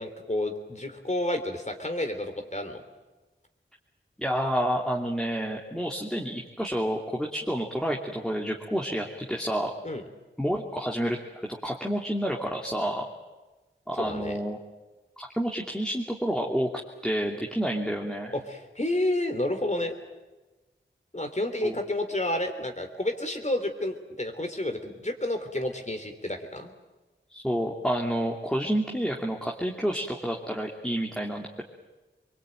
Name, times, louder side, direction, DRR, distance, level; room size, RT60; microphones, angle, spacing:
voice 1, 0.0-2.8 9.8-10.0 13.9-14.4 18.3-20.0 21.1-26.7, left 1 dB, 35° left, 6 dB, 3.6 m, -30 dB
voice 2, 4.2-9.7 10.4-11.2 11.6-13.0 13.9-14.6 15.2-16.7 17.0-18.3 21.6-21.8 27.3-31.6, equal, 5° left, -1 dB, 2.8 m, -29 dB
24.5 x 23.0 x 9.2 m, 1.2 s
wide cardioid pair, 45°, 20 cm